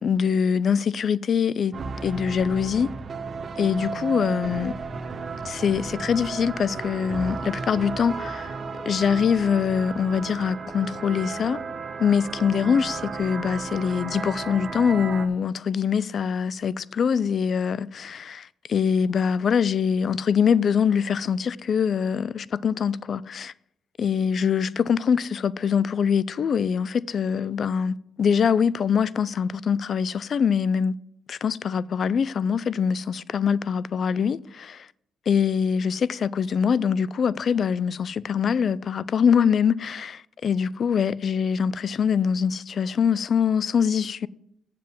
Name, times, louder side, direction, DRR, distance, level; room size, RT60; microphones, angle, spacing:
voice 1, 0.0-1.7 2.0-2.9 3.6-4.7 5.4-8.5 8.9-11.6 12.0-23.5 24.0-30.9 31.3-34.9 35.3-44.3, left 7 dB, 55° left, 0.3 m, -23 dB
sound 1, 1.7-15.3, right 4 dB, 40° right, 0.9 m, -34 dB
7.5 x 7.3 x 5.9 m
cardioid pair, 90°, 0 cm